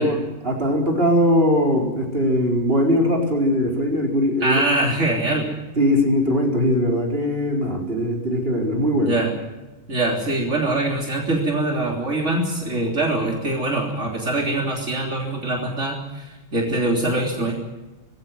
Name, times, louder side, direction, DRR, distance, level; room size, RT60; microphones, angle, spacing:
voice 1, 0.0-4.6 5.8-9.1, equal, 50° right, 1 dB, 4.7 m, -20 dB
voice 2, 4.4-5.5 9.0-9.3 9.9-17.6, right 2 dB, 75° right, 0 dB, 3.8 m, -23 dB
20.0 x 16.5 x 9.4 m, 1.1 s
omnidirectional pair, 1.3 m